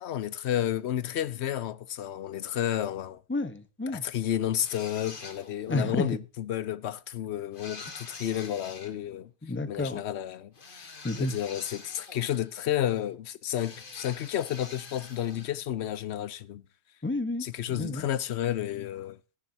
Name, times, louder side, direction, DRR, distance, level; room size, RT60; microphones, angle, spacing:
voice 1, 0.0-3.2 3.9-9.3 9.7-16.6 17.4-19.2, left 11 dB, 60° left, 0.8 m, -31 dB
voice 2, 3.3-4.0 5.7-6.2 9.4-10.0 11.0-11.3 17.0-18.1, left 2 dB, 10° left, 0.7 m, -31 dB
sound 1, 4.6-5.7 7.5-8.9 10.5-12.6 13.6-15.6, left 4 dB, 40° left, 1.5 m, -45 dB
14.0 x 10.5 x 2.7 m
omnidirectional pair, 1.5 m